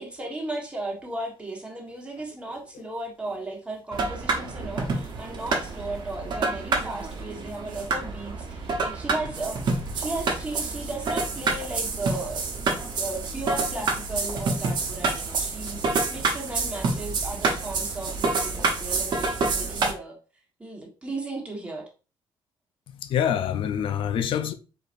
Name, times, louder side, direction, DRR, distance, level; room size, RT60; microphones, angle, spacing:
voice 1, 0.0-12.6 13.0-20.1 20.6-21.9, right 2 dB, 15° right, 1.3 m, -35 dB
voice 2, 2.5-2.9 22.9-24.5, left 9 dB, 70° left, 0.5 m, -27 dB
sound 1, 3.9-19.9, right 3 dB, 55° right, 1.0 m, -28 dB
4.9 x 4.1 x 2.6 m
cardioid pair, 155°, 9 cm